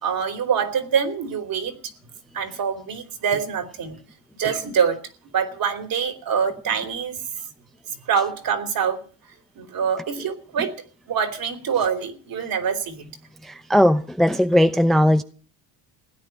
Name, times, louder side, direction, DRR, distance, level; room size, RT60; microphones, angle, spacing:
voice 1, 0.0-1.8 2.3-4.0 4.4-5.0 5.3-7.2 8.1-9.0 9.6-10.7 11.1-13.1, right 7 dB, 50° right, 3.3 m, -25 dB
voice 2, 13.4-15.2, equal, ahead, 0.7 m, -18 dB
16.5 x 9.6 x 9.1 m
cardioid pair, 100°, 45 cm